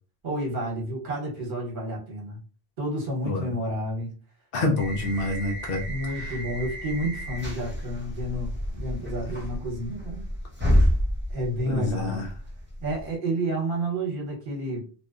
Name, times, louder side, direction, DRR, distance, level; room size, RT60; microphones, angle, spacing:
voice 1, 0.2-2.4 2.8-4.1 5.8-10.3 11.3-12.2 12.8-14.9, right 1 dB, 55° right, -1 dB, 1.1 m, -30 dB
voice 2, 4.5-5.9 6.2-6.3 11.6-12.3, left 2 dB, 65° left, 0 dB, 0.7 m, -27 dB
sound 1, 4.8-13.1, equal, 15° right, 0.6 m, -29 dB
2.7 x 2.1 x 2.3 m, 0.39 s
omnidirectional pair, 1.1 m